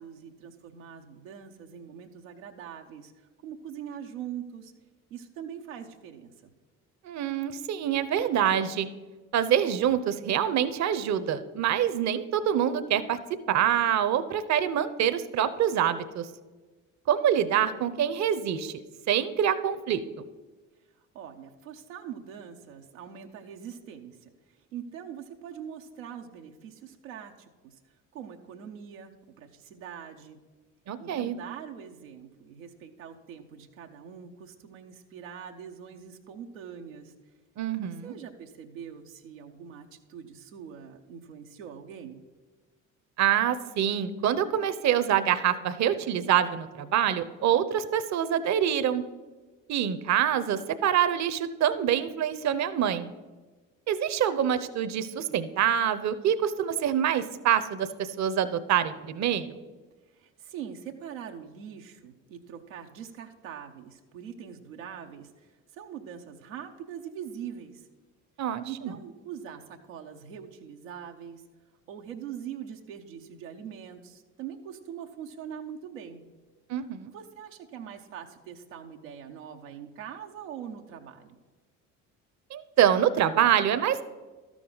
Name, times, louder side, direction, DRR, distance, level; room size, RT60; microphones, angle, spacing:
voice 1, 0.0-4.7 5.1-6.5 21.1-27.8 28.1-29.1 29.4-30.4 31.0-37.1 38.0-42.2 60.1-67.9 68.7-71.4 71.9-76.2 77.1-81.4, right 8 dB, 90° right, 3 dB, 0.7 m, -43 dB
voice 2, 7.0-8.9 9.3-13.2 13.5-16.3 17.1-18.7 19.1-20.0 30.9-31.4 37.6-38.1 43.2-49.0 49.7-53.1 53.9-59.5 68.4-68.9 76.7-77.1 82.5-84.0, right 9 dB, 45° right, 13 dB, 0.7 m, -26 dB
12.5 x 6.2 x 3.9 m, 1.3 s
hypercardioid pair, 55°, 39 cm